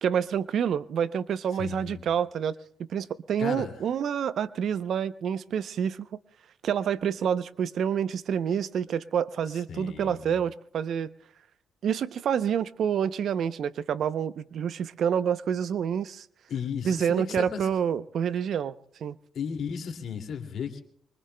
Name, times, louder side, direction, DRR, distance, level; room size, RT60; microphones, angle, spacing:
voice 1, 0.0-2.5 2.9-6.1 6.6-11.1 11.8-16.3 16.8-18.8 19.0-19.2, right 8 dB, 65° right, 14 dB, 0.6 m, -28 dB
voice 2, 1.5-2.0 3.4-3.8 9.7-10.4 16.5-17.7 19.3-20.8, left 7 dB, 65° left, 4 dB, 2.3 m, -35 dB
24.5 x 23.5 x 2.2 m, 0.68 s
cardioid pair, 90°, 0 cm